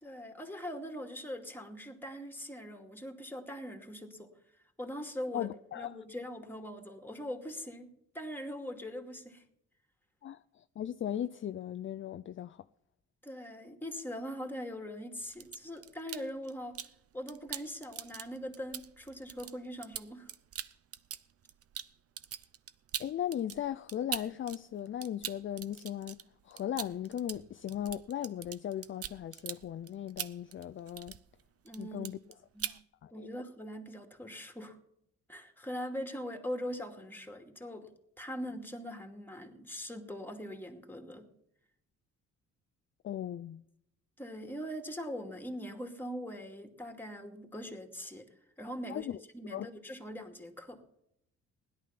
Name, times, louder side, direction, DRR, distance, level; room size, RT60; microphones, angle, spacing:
voice 1, 0.0-4.3 4.8-7.9 8.1-9.4 13.2-16.8 17.1-20.3 31.6-32.1 32.5-32.8 33.1-34.8 35.3-37.9 38.2-41.3 44.2-48.3 48.6-50.8, equal, 5° left, 2.4 m, -42 dB
voice 2, 5.3-6.0 10.2-12.7 23.0-31.2 31.8-32.2 32.7-33.3 43.0-43.6 48.9-49.2 49.5-49.7, left 10 dB, 40° left, 0.5 m, -38 dB
sound 1, 15.2-17.0 17.3-24.6 24.9-31.4 31.7-32.3 32.6-32.8, right 9 dB, 50° right, 0.8 m, -42 dB
16.5 x 11.5 x 5.8 m
cardioid pair, 90°, 30 cm